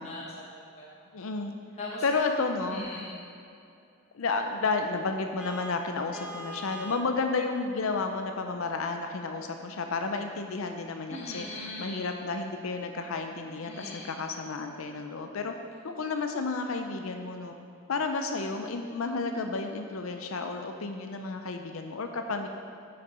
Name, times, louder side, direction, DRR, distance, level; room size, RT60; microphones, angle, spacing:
voice 1, 0.0-1.1 1.8-2.0 2.7-3.2 11.1-12.0 13.6-14.1, left 2 dB, 30° left, -7 dB, 1.3 m, -40 dB
voice 2, 1.1-1.5 2.0-2.9 4.1-11.5 11.8-15.5 15.8-17.5 17.9-22.5, left 3 dB, 85° left, 5 dB, 0.6 m, -31 dB
Vehicle horn car horn honking, 5.4-7.1, right 1 dB, 5° right, 0.5 m, -41 dB
8.9 x 6.6 x 4.3 m, 2.5 s
head